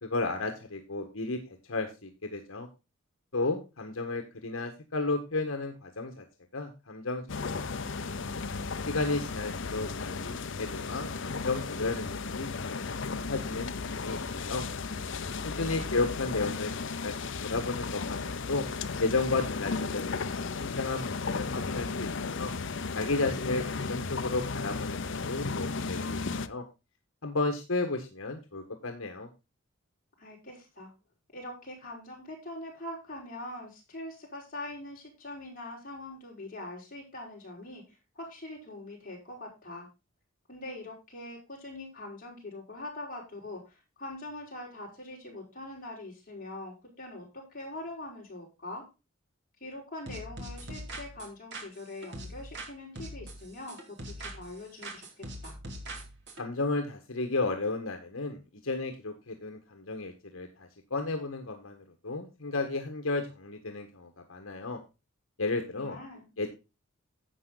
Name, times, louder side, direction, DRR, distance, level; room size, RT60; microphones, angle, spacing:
voice 1, 0.0-1.4 1.7-2.7 3.3-6.2 6.5-8.4 8.8-14.6 15.4-18.6 19.0-22.1 22.4-22.5 22.9-26.6 27.2-29.3 56.4-64.8 65.4-66.0 66.4-66.5, left 3 dB, 80° left, 4 dB, 1.5 m, -33 dB
sound 1, 7.3-26.5, left 4 dB, 60° left, 0.7 m, -35 dB
voice 2, 15.4-16.0 30.2-30.9 31.3-37.8 38.2-39.9 40.5-48.8 49.6-53.8 54.1-55.6 65.7-66.3, left 1 dB, 40° left, -2 dB, 5.4 m, -43 dB
sound 2, 50.1-52.7 53.0-54.6 54.8-56.4, right 1 dB, 55° right, 2.8 m, -42 dB
11.0 x 7.9 x 3.9 m, 0.27 s
head